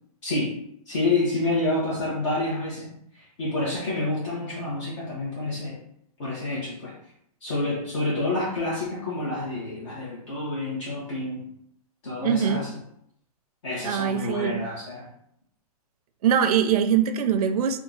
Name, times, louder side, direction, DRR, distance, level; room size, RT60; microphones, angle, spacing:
voice 1, 0.2-0.6 0.9-5.8 6.2-6.9 7.4-11.5 12.0-12.7 13.6-15.1, left 2 dB, 50° left, -7 dB, 1.1 m, -28 dB
voice 2, 12.2-12.7 13.8-14.6 16.2-17.8, right 8 dB, 70° right, 9 dB, 0.4 m, -22 dB
2.8 x 2.3 x 3.8 m, 0.71 s
hypercardioid pair, 165°, 20 cm